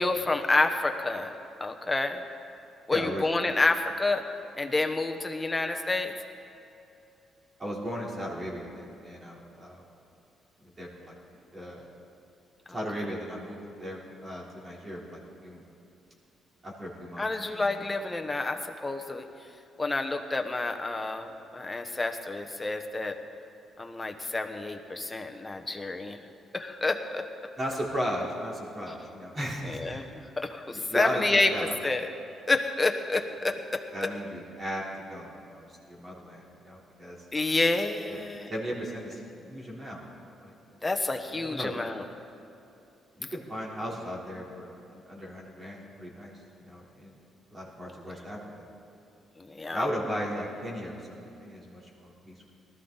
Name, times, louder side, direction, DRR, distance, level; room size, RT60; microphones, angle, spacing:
voice 1, 0.0-1.3 1.6-2.2 2.9-4.2 4.6-6.1 17.2-19.3 19.8-23.2 23.8-26.2 26.5-27.3 29.6-32.1 32.5-34.1 37.3-38.5 40.8-42.0 49.4-49.9, left 2 dB, 20° left, 5 dB, 1.1 m, -29 dB
voice 2, 2.9-3.4 7.6-9.8 10.6-11.1 11.5-11.9 12.7-15.6 16.6-17.3 17.6-17.8 27.6-30.0 30.7-31.2 31.5-31.8 33.9-34.8 35.1-37.2 38.1-38.2 38.5-40.5 41.3-41.7 43.2-46.3 46.6-47.1 47.5-48.4 49.7-52.4, equal, 30° right, -4 dB, 3.7 m, -36 dB
19.5 x 13.5 x 4.1 m, 2.8 s
cardioid pair, 90°, 0 cm